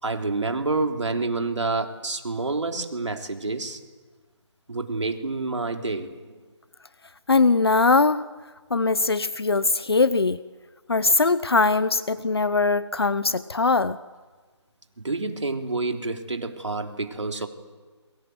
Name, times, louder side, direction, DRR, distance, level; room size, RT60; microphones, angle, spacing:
voice 1, 0.0-3.8 4.7-6.1 15.0-17.5, right 3 dB, 75° right, 4 dB, 3.5 m, -28 dB
voice 2, 7.3-8.2 8.7-10.4 10.9-14.0, left 3 dB, 55° left, 16 dB, 0.9 m, -21 dB
28.5 x 23.5 x 8.0 m, 1.4 s
hypercardioid pair, 180°, 15 cm